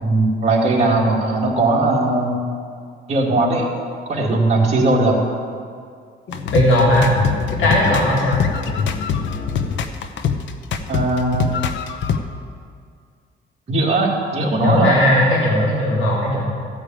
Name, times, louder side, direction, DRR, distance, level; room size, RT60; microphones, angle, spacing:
voice 1, 0.0-2.3 3.1-3.6 4.1-5.2 10.9-11.5 13.7-15.0, right 2 dB, 35° right, -4 dB, 2.0 m, -18 dB
sound 1, 6.3-12.2, left 6 dB, 65° left, 0.8 m, -23 dB
voice 2, 6.5-7.1 7.5-8.4 14.6-16.4, left 1 dB, 85° left, -4 dB, 2.1 m, -17 dB
14.0 x 5.0 x 8.9 m, 2.2 s
cardioid pair, 130°, 20 cm